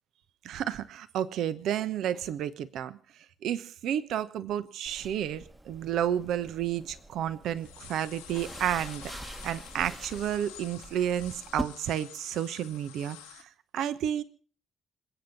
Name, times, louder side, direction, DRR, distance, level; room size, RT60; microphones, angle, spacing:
voice 1, 0.4-3.0 3.4-9.1 9.4-13.5 13.7-14.2, right 10 dB, 65° right, 14 dB, 1.0 m, -31 dB
sound 1, 4.9-11.6, right 1 dB, 20° right, 1.4 m, -43 dB
sound 2, 7.0-7.2 7.4-13.4, left 12 dB, 80° left, 1.2 m, -49 dB
26.5 x 9.2 x 6.0 m, 0.42 s
figure-of-eight pair, 45°, 0 cm